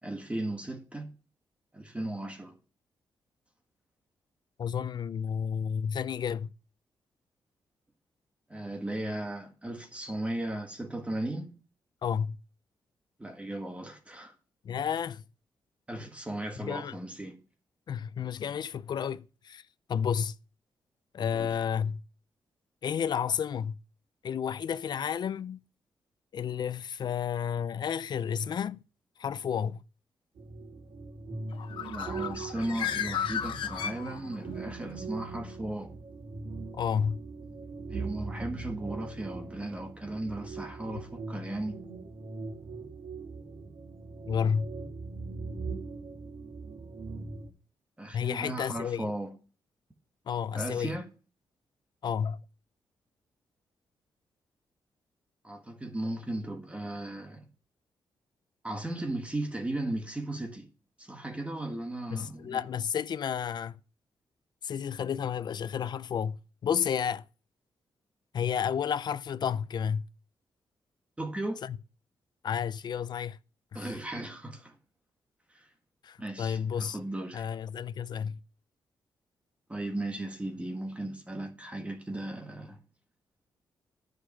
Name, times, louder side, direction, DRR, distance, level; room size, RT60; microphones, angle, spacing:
voice 1, 0.0-1.1 1.7-2.5 8.5-11.6 13.2-14.3 15.9-17.4 21.3-21.5 31.8-35.9 37.9-41.8 48.0-49.3 50.5-51.1 55.4-57.5 58.6-60.7 61.0-62.6 71.2-71.6 73.7-74.8 75.5-75.7 76.2-77.4 79.7-82.8, right 1 dB, 15° right, 1.7 m, -36 dB
voice 2, 4.6-6.5 12.0-12.4 14.6-15.2 16.6-17.0 17.9-19.6 19.9-20.4 21.1-22.0 22.8-23.8 24.2-25.6 26.3-28.8 29.2-29.8 36.7-37.2 44.3-44.7 48.1-49.0 50.3-51.0 52.0-52.4 62.1-63.8 64.6-67.2 68.3-70.0 71.6-71.8 72.4-73.4 73.7-73.9 76.0-77.0 77.3-78.4, left 7 dB, 60° left, 0.5 m, -31 dB
sound 1, 30.4-47.5, right 3 dB, 75° right, 2.7 m, -41 dB
Bird, 31.5-34.6, left 9 dB, 80° left, 0.9 m, -34 dB
10.0 x 5.4 x 6.3 m
cardioid pair, 80°, 8 cm